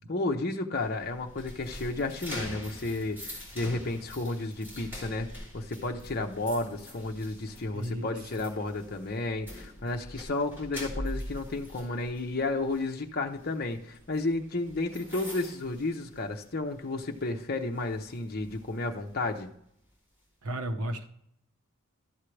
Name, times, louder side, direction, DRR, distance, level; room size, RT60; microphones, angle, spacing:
voice 1, 0.1-5.3 5.5-19.5, left 2 dB, 45° left, 3 dB, 0.8 m, -32 dB
sound 1, 0.7-16.7 17.0-17.3 17.7-19.4, left 1 dB, 10° right, 3.0 m, -44 dB
voice 2, 7.7-8.1 20.4-21.1, right 1 dB, 85° right, 7 dB, 1.0 m, -33 dB
12.5 x 7.3 x 3.3 m, 0.71 s
head